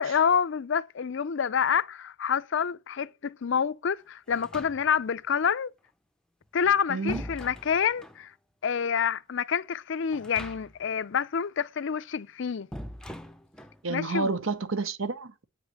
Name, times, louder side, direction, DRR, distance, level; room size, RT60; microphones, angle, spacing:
voice 1, 0.0-5.7 6.5-8.3 8.6-12.7 13.9-14.4, left 7 dB, 60° left, 0.5 m, -27 dB
sound 1, 4.3-5.2 6.4-8.3 10.1-10.9 11.2-11.3 12.7-13.8, equal, 5° left, 0.6 m, -42 dB
voice 2, 6.9-7.2 13.8-15.4, right 3 dB, 75° right, 0.9 m, -30 dB
8.8 x 5.6 x 8.0 m
head